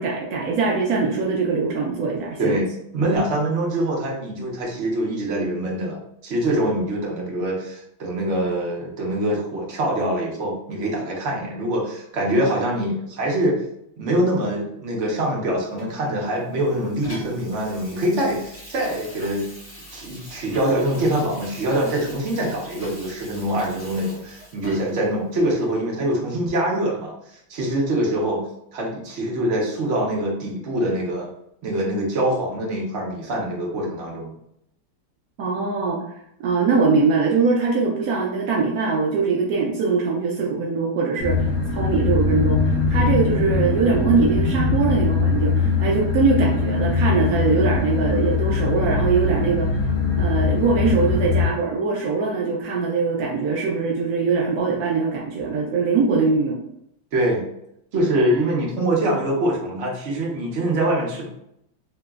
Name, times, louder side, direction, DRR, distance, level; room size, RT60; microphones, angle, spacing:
voice 1, 0.0-2.6 35.4-36.0 36.4-49.7 50.2-56.6, right 4 dB, 85° right, -1 dB, 0.8 m, -22 dB
voice 2, 2.9-13.6 14.0-19.5 19.9-28.4 28.7-31.3 31.6-34.3 57.1-57.4 57.9-61.3, right 1 dB, 55° right, -2 dB, 0.8 m, -24 dB
Water tap faucet / Sink (filling or washing), 15.8-25.1 25.6-25.7, equal, 30° left, 1.8 m, -42 dB
sound 1, 41.2-51.5, left 4 dB, 60° left, 0.9 m, -21 dB
3.3 x 2.8 x 2.3 m, 0.77 s
omnidirectional pair, 2.1 m